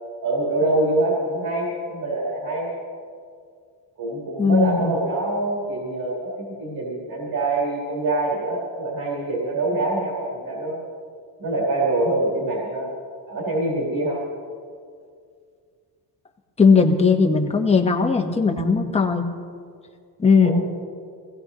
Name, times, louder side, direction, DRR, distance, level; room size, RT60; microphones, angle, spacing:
voice 1, 0.2-2.7 4.0-10.8 11.4-12.9 13.3-14.2 20.4-20.5, right 2 dB, 55° right, -4 dB, 3.9 m, -25 dB
voice 2, 4.4-4.9 16.6-19.2 20.2-20.5, left 5 dB, 15° left, 2 dB, 1.3 m, -18 dB
23.0 x 17.0 x 3.1 m, 2.2 s
cardioid pair, 145°, 41 cm